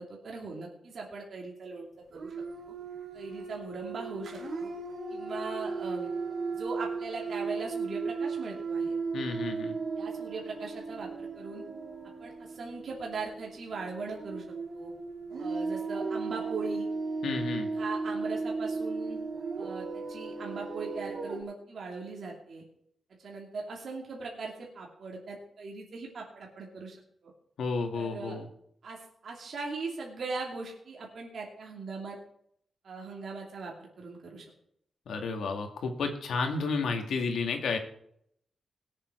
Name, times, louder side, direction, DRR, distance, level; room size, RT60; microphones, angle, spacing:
voice 1, 0.0-2.3 2.7-2.8 3.1-4.7 5.1-6.1 6.5-9.0 10.0-11.6 12.2-14.4 14.7-14.9 15.4-16.9 17.7-19.2 19.6-22.6 23.2-26.9 27.2-27.3 27.9-28.4 28.8-32.2 32.8-34.4, right 4 dB, 55° right, -1 dB, 2.8 m, -40 dB
sound 1, 2.1-21.4, right 4 dB, 75° right, 2.9 m, -36 dB
voice 2, 9.1-9.8 17.2-17.7 27.6-28.5 35.1-37.8, left 4 dB, 90° left, 4 dB, 2.2 m, -31 dB
21.0 x 7.5 x 4.6 m, 0.69 s
wide cardioid pair, 160°, 0 cm